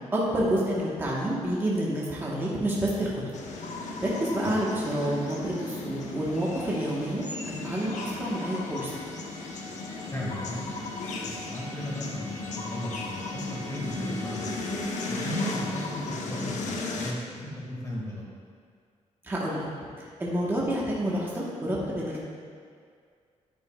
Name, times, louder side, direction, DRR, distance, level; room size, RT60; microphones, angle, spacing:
voice 1, 0.1-3.2 3.8-8.9 15.7-15.9 19.2-19.7 20.0-22.2, right 1 dB, 15° right, -5 dB, 1.2 m, -29 dB
sound 1, 3.3-17.1, left 2 dB, 75° left, 0.9 m, -35 dB
sound 2, 7.7-16.1, equal, 70° right, 2.2 m, -46 dB
voice 2, 10.1-10.8 11.2-14.7 15.1-18.2, left 1 dB, 25° left, -5 dB, 2.0 m, -36 dB
10.0 x 9.1 x 2.3 m, 2.1 s
wide cardioid pair, 170°, 12 cm